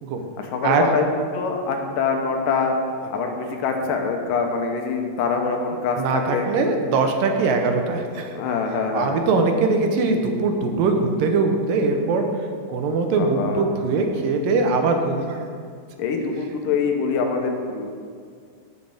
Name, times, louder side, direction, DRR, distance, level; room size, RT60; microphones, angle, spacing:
voice 1, 0.4-2.8 3.1-6.5 8.1-9.2 13.2-13.7 16.0-17.9, left 5 dB, 80° left, 3 dB, 2.5 m, -24 dB
voice 2, 6.0-8.3 8.9-12.2 12.7-15.5, right 4 dB, 85° right, 4 dB, 2.6 m, -21 dB
15.5 x 6.5 x 3.5 m, 2.1 s
omnidirectional pair, 3.9 m